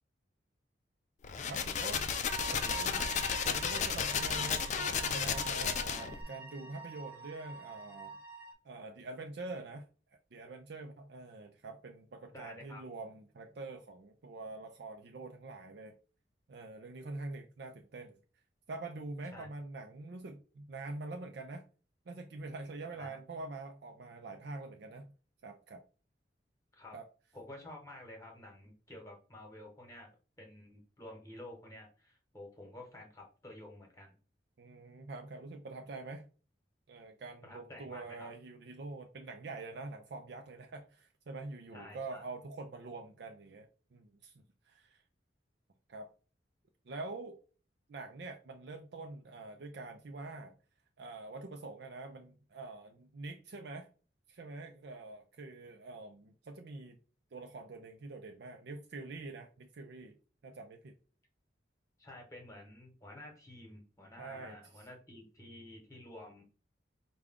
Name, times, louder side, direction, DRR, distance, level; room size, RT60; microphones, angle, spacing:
sound 1, 1.2-6.2, left 7 dB, 40° left, 0.4 m, -33 dB
voice 1, 1.5-2.1 2.5-3.1 3.4-8.2 8.6-9.9 10.3-16.0 16.5-18.2 18.7-21.6 22.1-25.1 25.4-25.8 26.9-27.1 34.6-36.3 36.9-45.0 45.9-46.1 46.9-47.4 47.9-50.5 51.0-53.9 54.3-57.0 57.3-60.2 60.4-60.9 64.2-64.6, right 3 dB, 60° right, 4 dB, 0.5 m, -45 dB
sound 2, 2.3-8.5, right 3 dB, 10° right, 0.9 m, -45 dB
voice 2, 2.4-3.1 12.3-12.8 19.3-19.5 22.9-23.2 26.7-27.0 27.3-30.1 30.4-34.1 37.4-38.3 41.7-42.2 62.0-66.4, left 1 dB, 15° left, 0 dB, 1.2 m, -50 dB
4.8 x 2.2 x 3.6 m, 0.37 s
head